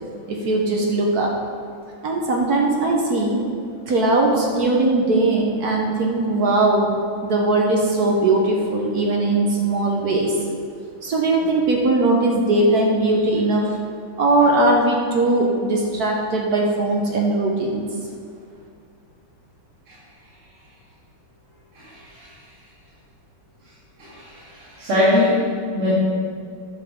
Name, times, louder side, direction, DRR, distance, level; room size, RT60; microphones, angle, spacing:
voice 1, 0.3-1.3 2.0-3.4 3.9-6.9 7.2-10.3 11.0-13.8 14.2-17.8, right 2 dB, 55° right, 0 dB, 1.2 m, -19 dB
voice 2, 21.7-22.3 24.0-25.4 25.7-25.9, left 1 dB, 80° right, -13 dB, 3.4 m, -22 dB
10.5 x 7.4 x 3.6 m, 2.3 s
omnidirectional pair, 2.3 m